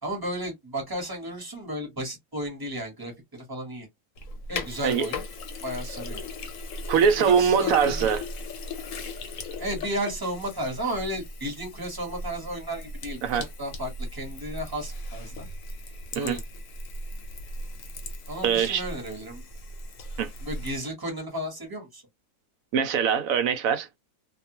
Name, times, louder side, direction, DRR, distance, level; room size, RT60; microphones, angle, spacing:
voice 1, 0.0-3.1 3.5-3.9 4.5-5.2 5.6-6.2 7.2-8.2 9.6-15.5 16.1-16.4 18.3-19.4 20.4-22.0, equal, 15° right, 0.9 m, -33 dB
Sink (filling or washing), 4.2-20.8, left 2 dB, 65° left, 1.0 m, -37 dB
voice 2, 6.9-8.2 13.2-13.5 16.2-16.4 18.4-18.8 20.2-20.3 22.7-23.9, right 7 dB, 70° right, 0.9 m, -22 dB
2.5 x 2.2 x 2.8 m
omnidirectional pair, 1.7 m